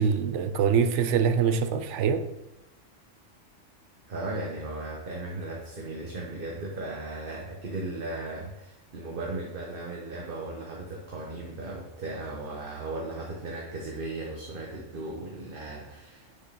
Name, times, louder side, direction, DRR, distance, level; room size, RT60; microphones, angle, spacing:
voice 1, 0.0-2.2, right 6 dB, 75° right, 1.0 m, -24 dB
voice 2, 4.1-16.3, right 2 dB, 45° right, 1.3 m, -36 dB
9.0 x 6.8 x 4.1 m
omnidirectional pair, 1.3 m